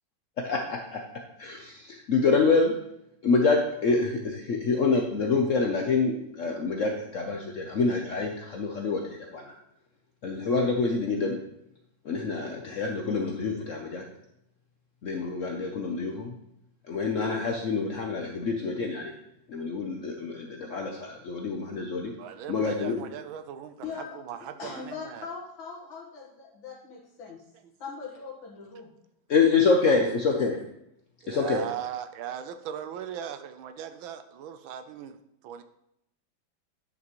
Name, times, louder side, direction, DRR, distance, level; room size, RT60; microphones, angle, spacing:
voice 1, 0.4-2.7 3.2-9.5 10.2-11.4 12.0-14.0 15.0-16.3 16.9-19.1 19.5-22.1 22.5-23.0 29.3-30.6 31.3-31.6, left 4 dB, 60° left, 2 dB, 0.8 m, -26 dB
voice 2, 22.2-25.3 31.2-35.2 35.4-35.6, right 9 dB, 90° right, 10 dB, 1.5 m, -38 dB
voice 3, 23.8-27.4 27.8-28.9, left 5 dB, 90° left, -3 dB, 2.3 m, -41 dB
10.0 x 6.1 x 3.0 m, 0.79 s
omnidirectional pair, 2.1 m